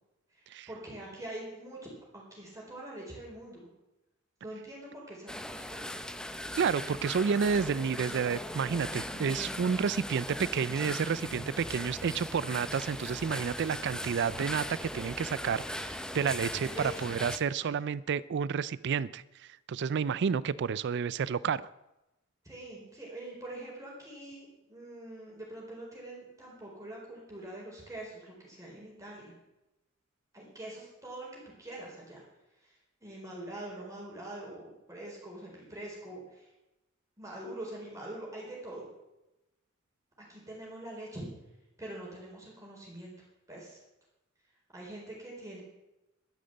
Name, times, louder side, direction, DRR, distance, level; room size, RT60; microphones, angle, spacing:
voice 1, 0.3-1.8 2.1-3.7 4.4-6.0 16.6-17.1 17.5-17.8 22.4-29.3 30.3-31.3 31.6-32.2 32.6-36.5 37.2-38.9 40.3-41.3 41.8-43.1 43.5-43.8 44.7-45.6, right 1 dB, 15° right, -4 dB, 4.3 m, -44 dB
sound 1, 5.3-17.4, left 1 dB, 5° left, 0.7 m, -39 dB
voice 2, 6.6-19.2 19.7-21.7, right 6 dB, 55° right, 19 dB, 0.4 m, -30 dB
12.5 x 10.5 x 7.8 m, 0.96 s
head